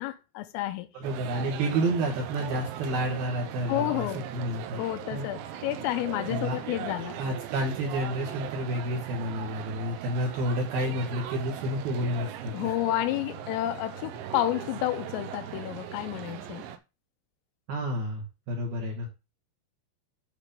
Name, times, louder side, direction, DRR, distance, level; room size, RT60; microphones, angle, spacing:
voice 1, 0.0-0.9 3.7-4.2 4.8-7.2 12.5-16.7, left 15 dB, 85° left, 3.3 m, -30 dB
voice 2, 0.9-4.8 5.1-5.3 6.3-6.6 7.2-12.7 17.7-19.1, right 1 dB, 60° right, 2.7 m, -30 dB
sound 1, 1.0-16.8, right 10 dB, 80° right, 2.8 m, -39 dB
8.9 x 4.1 x 5.2 m
omnidirectional pair, 6.0 m